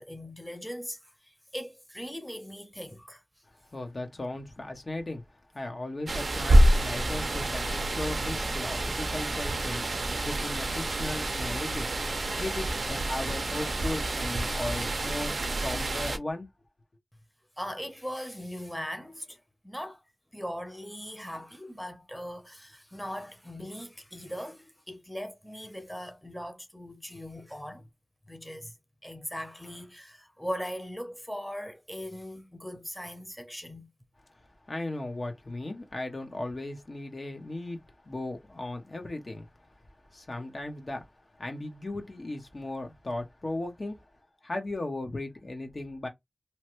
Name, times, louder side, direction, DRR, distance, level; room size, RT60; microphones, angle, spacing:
voice 1, 0.0-3.2 17.6-20.0 20.3-27.8 28.3-28.7 29.0-33.9, equal, 5° left, 0.7 m, -39 dB
voice 2, 3.7-5.2 5.5-11.9 12.4-15.3 15.6-16.5 34.7-39.5 40.1-41.0 41.4-44.0 44.4-46.1, left 2 dB, 60° left, 0.8 m, -36 dB
sound 1, 6.1-16.2, right 1 dB, 85° right, 0.4 m, -27 dB
2.9 x 2.1 x 2.9 m
wide cardioid pair, 55°, 0 cm